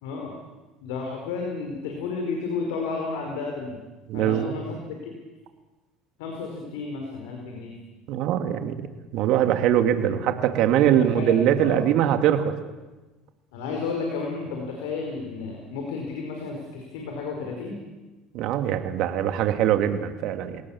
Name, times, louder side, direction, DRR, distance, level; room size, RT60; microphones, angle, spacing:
voice 1, 0.0-0.3 0.8-3.8 4.1-5.1 6.2-7.8 10.8-11.8 13.5-17.8, left 4 dB, 85° left, 2 dB, 4.7 m, -32 dB
voice 2, 4.1-4.5 8.1-8.7 9.1-12.5 18.3-20.6, right 10 dB, 65° right, 7 dB, 2.5 m, -22 dB
28.5 x 18.0 x 7.3 m, 1.2 s
supercardioid pair, 100°, 0 cm